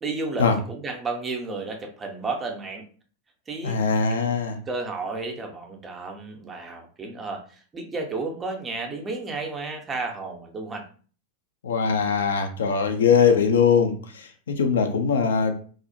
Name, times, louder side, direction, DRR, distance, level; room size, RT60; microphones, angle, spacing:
voice 1, 0.0-2.9 3.5-3.8 4.1-4.2 4.7-10.9, right 3 dB, 20° right, 3 dB, 0.5 m, -32 dB
voice 2, 3.6-4.6 11.6-15.5, left 6 dB, 65° left, 6 dB, 0.4 m, -21 dB
2.4 x 2.0 x 2.7 m, 0.41 s
figure-of-eight pair, 90°, 0 cm